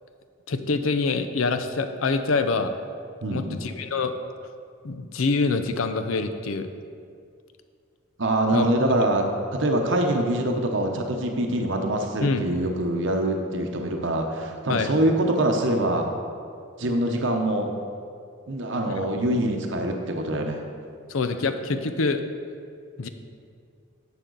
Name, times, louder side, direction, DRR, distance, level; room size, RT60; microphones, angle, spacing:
voice 1, 0.5-2.7 3.3-4.1 4.8-6.7 8.5-8.7 9.0-9.1 12.2-12.4 14.7-14.9 18.9-19.0 21.1-22.2 23.0-23.1, left 4 dB, 80° left, 9 dB, 0.6 m, -25 dB
voice 2, 3.2-3.6 8.2-9.2 9.5-16.1 16.8-17.7 18.5-20.6, right 1 dB, 65° right, 3 dB, 0.9 m, -24 dB
11.0 x 7.4 x 4.0 m, 2.3 s
head